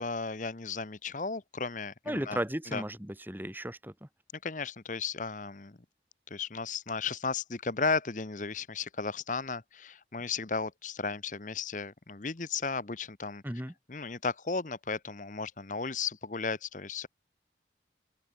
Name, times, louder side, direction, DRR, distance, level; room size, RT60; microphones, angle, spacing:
voice 1, 0.0-2.4 2.7-2.8 4.4-5.8 6.3-13.4 13.9-17.1, left 4 dB, 45° left, 0.9 m, -34 dB
voice 2, 2.1-4.1 13.4-13.7, right 1 dB, 10° right, 2.1 m, -35 dB
open air
head